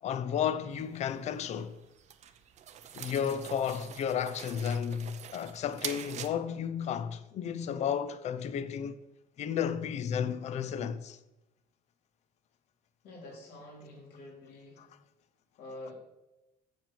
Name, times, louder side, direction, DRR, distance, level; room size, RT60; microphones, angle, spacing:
voice 1, 0.0-1.8 2.9-9.0 9.4-11.2 14.8-14.9, left 8 dB, 40° left, 0.6 m, -33 dB
sound 1, 0.7-6.3, right 9 dB, 40° right, 0.6 m, -45 dB
voice 2, 13.0-14.9 15.6-15.9, left 1 dB, 70° left, 4.2 m, -47 dB
7.4 x 7.3 x 7.4 m
cardioid pair, 170°, 17 cm